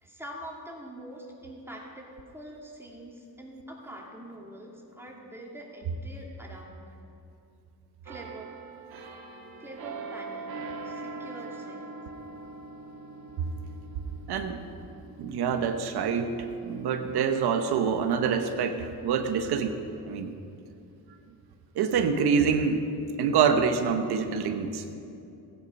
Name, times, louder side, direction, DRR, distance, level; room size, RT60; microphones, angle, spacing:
voice 1, 0.0-6.9 8.0-8.5 9.6-12.0, right 1 dB, 5° right, -2 dB, 2.7 m, -44 dB
sound 1, 8.1-19.6 20.0-20.3, right 4 dB, 70° right, 1.5 m, -43 dB
voice 2, 14.3-14.6 15.2-19.8 20.1-20.3 21.7-22.8 23.2-24.8, right 6 dB, 85° right, 7 dB, 1.1 m, -26 dB
16.0 x 9.8 x 5.4 m, 2.7 s
cardioid pair, 90°, 38 cm